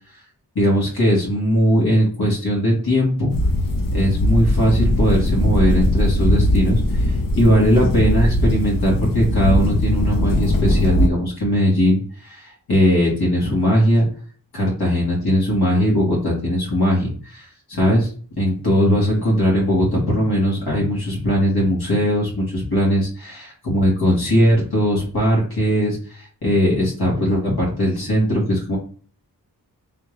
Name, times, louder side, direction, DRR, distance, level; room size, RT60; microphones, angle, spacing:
voice 1, 0.5-3.3 3.9-14.1 14.5-18.1 18.4-28.8, equal, 75° left, -4 dB, 1.8 m, -19 dB
sound 1, 3.3-11.1, left 1 dB, 60° left, 0.8 m, -19 dB
3.5 x 3.4 x 3.1 m, 0.43 s
wide cardioid pair, 60°, 39 cm